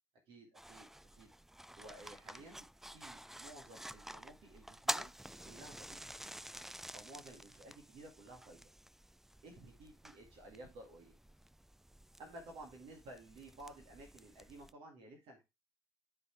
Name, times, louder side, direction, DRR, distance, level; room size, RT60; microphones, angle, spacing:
voice 1, 0.3-1.3 1.8-2.7 2.9-5.1 5.5-6.0 6.9-8.6 9.4-11.2 12.2-15.4, right 2 dB, 65° right, 1 dB, 2.0 m, -54 dB
sound 1, 0.5-14.7, right 1 dB, 5° right, 0.3 m, -49 dB
12.0 x 4.0 x 3.3 m, 0.23 s
hypercardioid pair, 55°, 10 cm